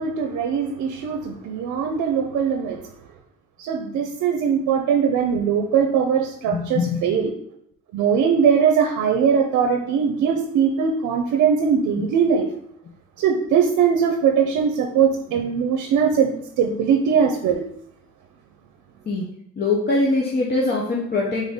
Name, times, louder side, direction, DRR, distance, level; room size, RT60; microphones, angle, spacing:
voice 1, 0.0-2.9 3.6-7.3 7.9-12.5 13.2-17.6, right 7 dB, 90° right, 4 dB, 0.5 m, -21 dB
voice 2, 6.5-7.1 19.1-19.3 19.6-21.5, left 3 dB, 35° left, -3 dB, 0.8 m, -22 dB
4.0 x 3.6 x 3.5 m, 0.73 s
cardioid pair, 105°, 29 cm